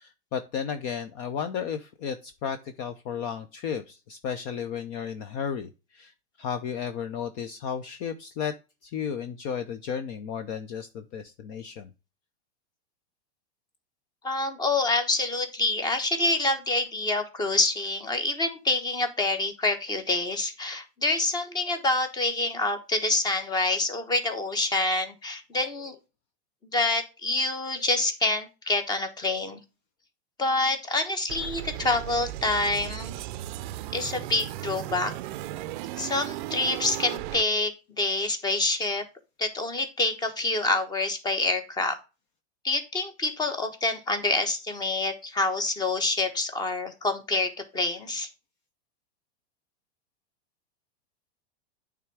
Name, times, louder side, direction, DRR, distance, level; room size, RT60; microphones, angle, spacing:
voice 1, 0.0-6.1 6.4-8.5 8.8-11.9, left 7 dB, 40° left, 9 dB, 0.7 m, -33 dB
voice 2, 14.2-26.0 26.7-29.6 30.4-33.1 33.9-35.1 36.0-39.0 39.4-42.0 42.6-48.3, left 2 dB, 10° left, 8 dB, 1.1 m, -27 dB
sound 1, 31.3-37.4, right 14 dB, 50° right, 0.5 m, -36 dB
9.0 x 3.6 x 4.7 m, 0.29 s
supercardioid pair, 155°, 33 cm